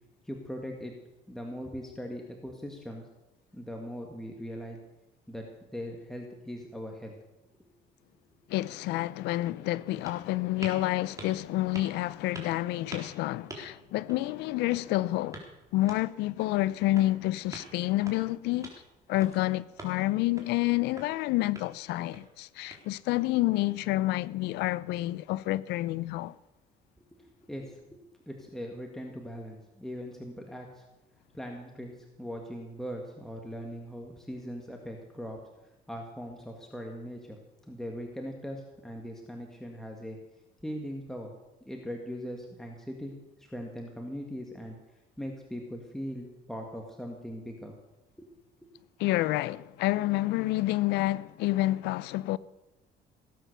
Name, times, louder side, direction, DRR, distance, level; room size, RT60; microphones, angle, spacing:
voice 1, 0.2-0.9 1.3-3.0 3.5-4.8 5.3-5.5 5.7-7.1 27.0-28.0 28.3-30.8 31.3-37.4 37.7-40.2 40.6-41.3 41.7-43.1 43.4-44.8 45.2-47.7 48.2-48.3 48.6-48.7, equal, ahead, 1.9 m, -40 dB
voice 2, 8.5-15.4 15.7-18.7 19.1-26.3 49.0-52.4, left 17 dB, 90° left, 0.6 m, -29 dB
sound 1, 8.9-23.3, right 2 dB, 20° right, 4.0 m, -49 dB
18.0 x 9.4 x 6.8 m
cardioid pair, 110°, 17 cm